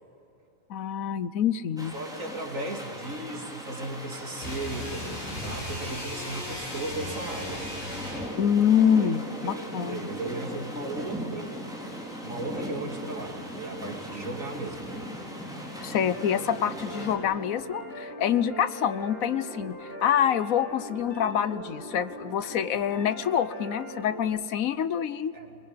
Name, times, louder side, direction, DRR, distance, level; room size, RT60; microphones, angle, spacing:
voice 1, 0.7-1.9 8.4-10.1 15.8-25.3, left 8 dB, 75° left, 14 dB, 1.2 m, -26 dB
sound 1, 1.8-17.1, equal, 5° right, 4.8 m, -39 dB
voice 2, 1.9-7.7 9.0-9.1 9.4-11.6 12.2-14.9 25.3-25.6, right 2 dB, 65° right, 2 dB, 3.2 m, -36 dB
sound 2, 4.4-8.4, left 1 dB, 60° left, 6.9 m, -37 dB
sound 3, 16.1-24.2, equal, 40° left, 5.8 m, -41 dB
24.0 x 22.5 x 9.7 m, 2.8 s
omnidirectional pair, 1.5 m